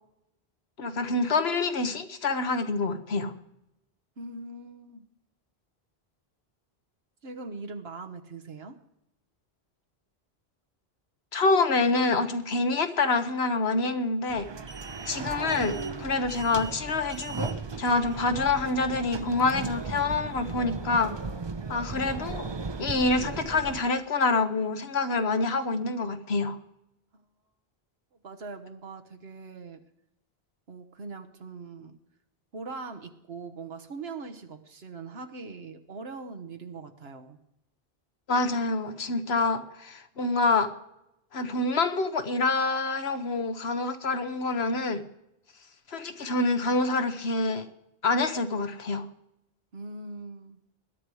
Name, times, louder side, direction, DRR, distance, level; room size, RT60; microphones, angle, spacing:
voice 1, 0.8-3.3 11.3-14.5 15.1-21.1 21.7-22.4 22.8-26.6 38.3-40.7 41.3-45.0 45.9-47.7 48.0-49.1, left 3 dB, 85° left, 9 dB, 1.4 m, -26 dB
voice 2, 4.2-5.0 7.2-8.8 27.1-27.2 28.2-29.8 30.7-32.0 32.5-37.4 49.7-50.6, right 3 dB, 80° right, 6 dB, 1.5 m, -41 dB
sound 1, 14.3-23.8, right 4 dB, 30° right, 0.6 m, -36 dB
20.0 x 11.0 x 4.9 m, 0.84 s
omnidirectional pair, 1.0 m